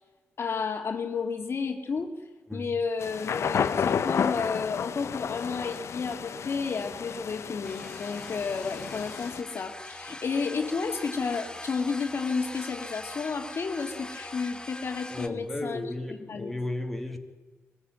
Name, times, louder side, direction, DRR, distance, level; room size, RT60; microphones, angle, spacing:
voice 1, 0.4-2.1 2.5-16.6, left 5 dB, 60° left, 5 dB, 2.1 m, -32 dB
sound 1, 3.0-9.4, left 7 dB, 75° left, 1.0 m, -32 dB
sound 2, 7.6-15.3, left 2 dB, 20° left, 1.3 m, -42 dB
voice 2, 15.1-17.2, left 2 dB, 5° left, 3 dB, 2.5 m, -34 dB
23.0 x 15.0 x 9.4 m, 1.2 s
cardioid pair, 85°, 5 cm